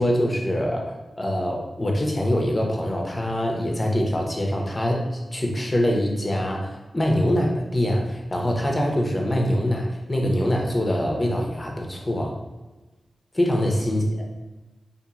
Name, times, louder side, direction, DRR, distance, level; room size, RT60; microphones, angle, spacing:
voice 1, 0.0-5.0 5.3-12.3 13.3-14.0, equal, 30° left, 0 dB, 0.6 m, -24 dB
2.9 x 2.4 x 2.4 m, 1.2 s
cardioid pair, 55°, 0 cm